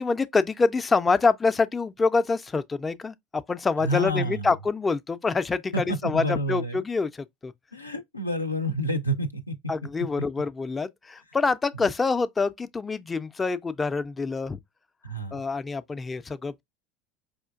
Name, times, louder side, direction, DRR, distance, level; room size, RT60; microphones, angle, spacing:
voice 1, 0.0-7.5 9.7-14.6 15.3-16.6, left 4 dB, 20° left, 0.3 m, -26 dB
voice 2, 3.8-4.5 5.7-6.8 7.7-9.5 15.0-15.3, equal, 90° left, 0.4 m, -28 dB
4.9 x 2.4 x 2.3 m
figure-of-eight pair, 75°, 0 cm